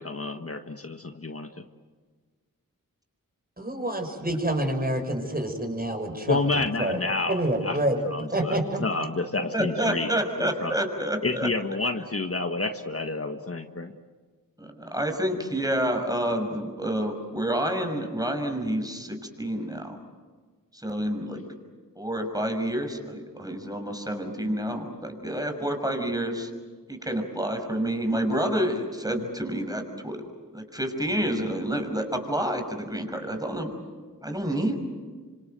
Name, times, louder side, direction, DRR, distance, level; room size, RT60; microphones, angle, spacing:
voice 1, 0.0-1.5 6.3-10.1 10.4-10.7 11.2-13.9, left 3 dB, 40° left, 6 dB, 1.6 m, -29 dB
voice 2, 3.6-6.4 6.8-7.0 7.3-8.0 8.3-8.8, right 1 dB, 25° right, 4 dB, 6.4 m, -27 dB
voice 3, 9.5-11.5 14.6-20.0 20.7-21.4 22.0-26.5 26.9-30.2 30.5-33.7 34.2-34.7, right 1 dB, 10° right, 5 dB, 6.1 m, -28 dB
26.5 x 26.5 x 7.9 m, 1.5 s
cardioid pair, 40°, 34 cm